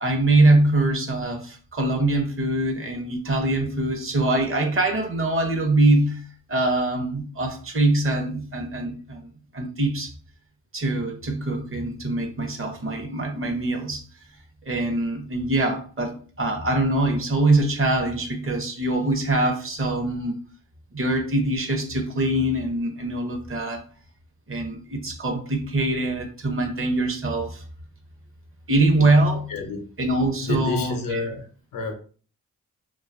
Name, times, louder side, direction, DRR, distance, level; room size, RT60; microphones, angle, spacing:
voice 1, 0.0-6.2 6.5-9.3 9.5-10.1 10.7-14.0 14.7-20.4 20.9-23.8 24.5-27.6 28.7-29.5 30.0-31.2, right 2 dB, 40° right, 0.8 m, -23 dB
voice 2, 29.5-29.9 30.4-31.5 31.7-31.9, left 4 dB, 85° left, 0.6 m, -29 dB
2.5 x 2.3 x 2.5 m
cardioid pair, 65°, 33 cm